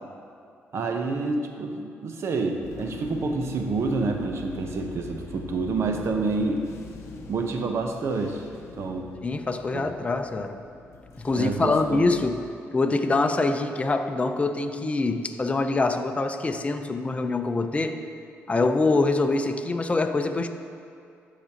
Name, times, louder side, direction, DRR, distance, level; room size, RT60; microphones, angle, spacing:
voice 1, 0.7-6.7 7.3-8.5 8.8-9.1 9.7-9.8 11.3-12.0, right 3 dB, 60° right, 4 dB, 0.8 m, -28 dB
sound 1, 2.6-12.5, left 3 dB, 70° left, 0.8 m, -43 dB
voice 2, 9.2-10.6 11.2-12.4 12.7-18.0 18.5-20.5, left 3 dB, 25° left, 7 dB, 0.6 m, -24 dB
13.0 x 5.0 x 2.9 m, 2.4 s
cardioid pair, 80°, 5 cm